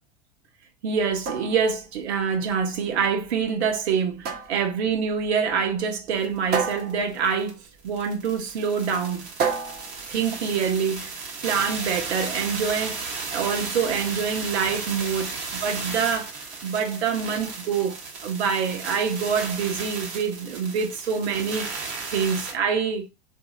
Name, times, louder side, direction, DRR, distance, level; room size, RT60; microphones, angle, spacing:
voice 1, 0.8-7.6 7.8-9.3 10.1-11.1 11.4-16.3 16.6-18.0 18.2-21.7 22.1-23.0, right 6 dB, 70° right, 0.9 m, -26 dB
sound 1, 1.0-11.0, right 6 dB, 30° right, 0.8 m, -33 dB
sound 2, 6.2-6.3 6.5-22.5, right 4 dB, 55° right, 1.4 m, -34 dB
2.7 x 2.5 x 2.4 m
figure-of-eight pair, 90°, 34 cm